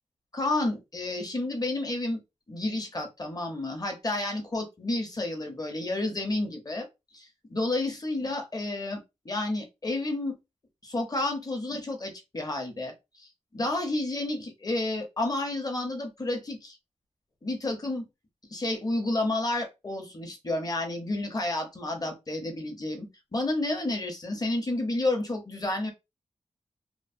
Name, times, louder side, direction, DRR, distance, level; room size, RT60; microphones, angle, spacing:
voice 1, 0.3-2.2 2.5-6.9 7.1-10.4 10.8-16.8 17.4-18.1 18.5-25.9, left 2 dB, 30° left, 0.9 m, -31 dB
3.0 x 2.0 x 2.5 m
wide cardioid pair, 85°, 13 cm